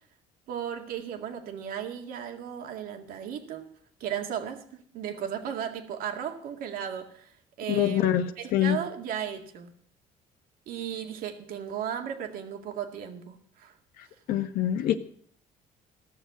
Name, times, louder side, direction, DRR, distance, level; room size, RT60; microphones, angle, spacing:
voice 1, 0.5-3.7 4.0-4.6 4.9-8.1 8.4-9.7 10.7-13.7, right 9 dB, 70° right, 5 dB, 2.1 m, -35 dB
voice 2, 7.7-8.8 14.3-15.0, left 11 dB, 75° left, 7 dB, 1.2 m, -25 dB
16.0 x 6.8 x 9.3 m, 0.63 s
cardioid pair, 110°, 15 cm